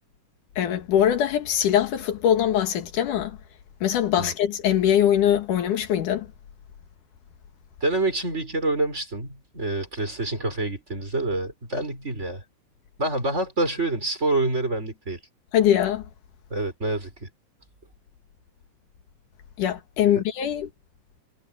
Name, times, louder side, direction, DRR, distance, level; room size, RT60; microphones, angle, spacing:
voice 1, 0.6-3.4 3.8-6.3 15.5-16.0 19.6-20.7, left 10 dB, 85° left, 3.2 m, -22 dB
voice 2, 7.8-12.4 13.0-15.2 16.5-17.3 20.0-20.2, right 2 dB, 20° right, 4.4 m, -27 dB
omnidirectional pair, 3.5 m